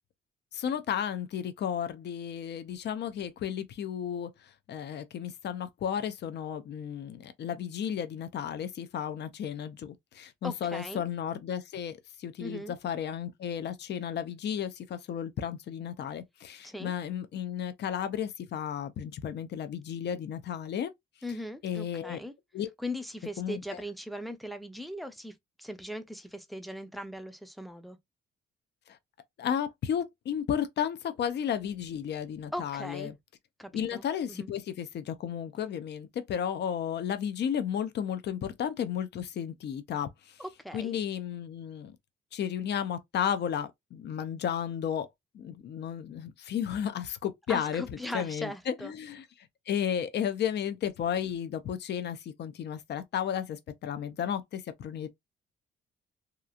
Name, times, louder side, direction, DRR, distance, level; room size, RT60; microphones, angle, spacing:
voice 1, 0.5-4.3 4.7-20.9 21.6-22.2 22.5-22.7 23.4-23.6 29.4-33.1 33.7-40.1 40.7-42.0 42.3-45.1 45.3-47.8 48.1-49.2 49.7-55.1, left 9 dB, 60° left, 0.6 m, -33 dB
voice 2, 10.4-11.0 12.4-12.7 16.6-16.9 21.2-22.3 22.8-28.0 32.5-33.1 33.6-34.5 40.4-41.0 47.5-48.9, left 1 dB, ahead, 0.5 m, -39 dB
2.9 x 2.4 x 2.3 m
cardioid pair, 90°, 20 cm